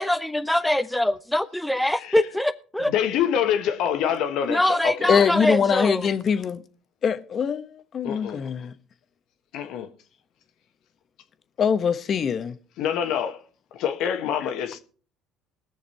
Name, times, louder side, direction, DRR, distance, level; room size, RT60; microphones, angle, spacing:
voice 1, 0.0-2.9 4.5-6.1, left 1 dB, 5° left, 0.8 m, -23 dB
voice 2, 1.8-2.2 2.8-5.4 8.0-8.4 9.5-9.9 12.8-13.4 13.7-14.8, left 9 dB, 70° left, 1.3 m, -26 dB
voice 3, 5.1-6.6 7.0-7.6 7.9-8.7 11.6-12.5, left 7 dB, 45° left, 1.0 m, -23 dB
19.5 x 6.6 x 4.3 m
hypercardioid pair, 75°, 0 cm